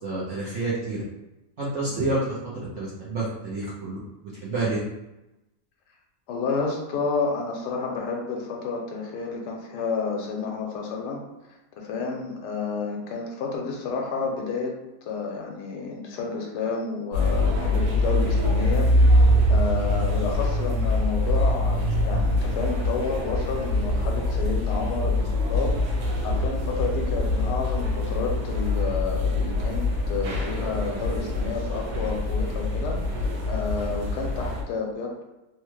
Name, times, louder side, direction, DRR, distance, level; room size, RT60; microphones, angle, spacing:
voice 1, 0.0-1.0 1.6-4.0 4.2-4.8, right 2 dB, 65° right, -7 dB, 0.7 m, -29 dB
voice 2, 6.3-11.2 11.8-14.7 15.1-25.7 26.2-33.0 33.5-35.2, left 4 dB, 75° left, 0 dB, 1.2 m, -30 dB
sound 1, 17.1-34.6, left 1 dB, 90° right, 1.4 m, -24 dB
3.4 x 2.1 x 3.0 m, 0.97 s
omnidirectional pair, 1.9 m